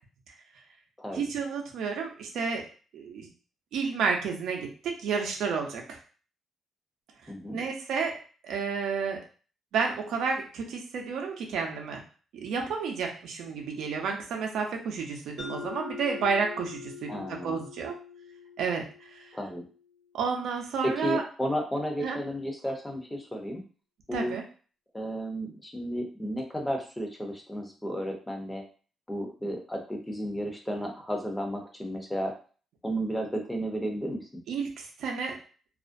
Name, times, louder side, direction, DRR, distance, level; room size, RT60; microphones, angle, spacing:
voice 1, 1.1-2.7 2.9-3.3 3.7-6.0 7.2-8.1 8.4-9.2 9.7-12.0 12.3-18.0 18.6-18.8 19.1-19.3 20.1-21.2 22.0-22.2 24.1-24.4 34.5-35.4, right 5 dB, 80° right, 2 dB, 0.5 m, -31 dB
voice 2, 7.3-7.6 17.1-17.6 19.3-19.7 20.8-23.6 24.1-24.3 24.9-28.6 29.1-32.3 32.8-34.4, equal, 10° left, 2 dB, 0.6 m, -33 dB
Mallet percussion, 15.4-19.9, left 6 dB, 65° left, 1.0 m, -44 dB
2.4 x 2.1 x 2.5 m, 0.39 s
cardioid pair, 90°, 0 cm